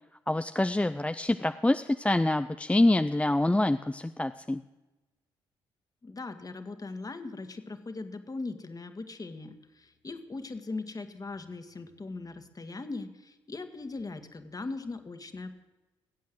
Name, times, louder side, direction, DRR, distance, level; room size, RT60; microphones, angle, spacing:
voice 1, 0.3-4.6, left 1 dB, 10° left, 9 dB, 0.6 m, -26 dB
voice 2, 6.0-15.5, left 3 dB, 30° left, 8 dB, 1.8 m, -39 dB
19.0 x 8.4 x 7.8 m, 1.1 s
hypercardioid pair, 45°, 12 cm